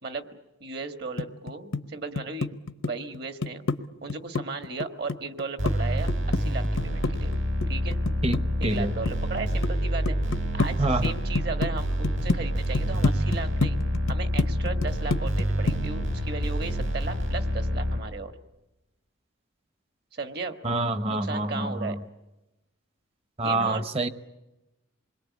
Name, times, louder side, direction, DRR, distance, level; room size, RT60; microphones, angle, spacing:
voice 1, 0.0-2.5 2.8-3.6 4.0-7.3 7.7-8.0 8.6-10.2 10.5-13.8 14.1-18.3 20.1-20.6 21.1-22.0 23.4-23.8, right 3 dB, 50° right, 7 dB, 1.6 m, -36 dB
sound 1, 1.2-1.8 2.2-3.8 4.1-5.8 6.1-8.8 9.1-9.7 10.1-10.7 11.0-11.7 12.0-12.4 12.7-15.4 15.7-15.9, left 3 dB, 80° left, 0.9 m, -27 dB
sound 2, 5.6-18.0, equal, 80° right, 5.8 m, -27 dB
voice 2, 8.2-8.9 10.8-11.1 20.6-22.0 23.4-24.1, right 2 dB, 30° right, 11 dB, 0.9 m, -27 dB
27.5 x 21.5 x 8.5 m, 0.99 s
head